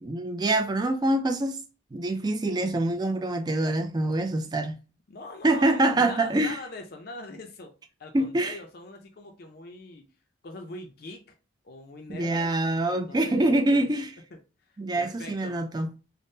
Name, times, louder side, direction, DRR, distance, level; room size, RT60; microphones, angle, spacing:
voice 1, 0.0-1.6 1.9-4.8 5.4-6.6 8.1-8.6 12.1-14.1 14.8-15.9, right 2 dB, 20° right, 0.3 m, -25 dB
voice 2, 5.1-7.7 8.0-10.1 10.4-11.4 11.6-12.5 12.9-13.9 14.3-14.4 15.0-15.6, left 2 dB, 55° left, 0.4 m, -42 dB
3.5 x 2.0 x 2.6 m
head